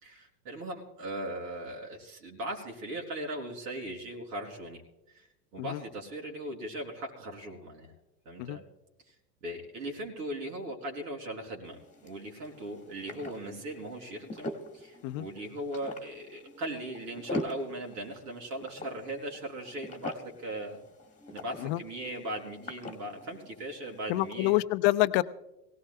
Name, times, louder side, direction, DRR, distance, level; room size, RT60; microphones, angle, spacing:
voice 1, 0.0-4.8 5.1-5.3 5.5-7.9 8.3-8.6 9.1-9.2 9.4-20.8 21.3-24.6, right 1 dB, 70° right, -1 dB, 4.0 m, -39 dB
sound 1, 11.7-24.6, left 1 dB, 15° left, 1.6 m, -44 dB
voice 2, 24.1-25.2, left 18 dB, 45° left, 14 dB, 0.7 m, -27 dB
23.5 x 17.5 x 2.2 m, 0.92 s
hypercardioid pair, 105°, 48 cm